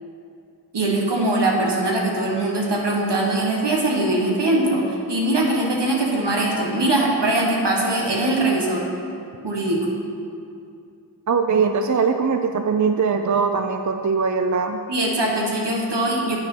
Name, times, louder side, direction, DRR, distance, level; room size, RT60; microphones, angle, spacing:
voice 1, 0.7-8.8 9.4-9.8 14.9-16.4, right 2 dB, 75° right, -1 dB, 1.6 m, -21 dB
voice 2, 11.3-14.8, right 5 dB, 45° right, 7 dB, 0.5 m, -21 dB
8.9 x 6.0 x 5.7 m, 2.5 s
wide cardioid pair, 55°, 41 cm